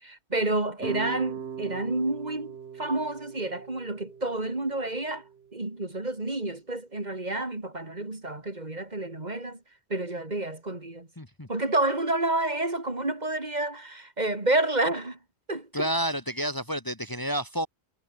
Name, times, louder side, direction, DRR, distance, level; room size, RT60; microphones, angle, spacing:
voice 1, 0.0-5.2 5.5-9.6 9.9-11.1 11.5-15.2 15.5-15.9, right 2 dB, 40° right, 2.9 m, -29 dB
sound 1, 0.8-5.9, right 7 dB, 75° right, 1.3 m, -40 dB
voice 2, 11.2-11.5 15.7-17.7, equal, 20° left, 1.8 m, -30 dB
omnidirectional pair, 1.1 m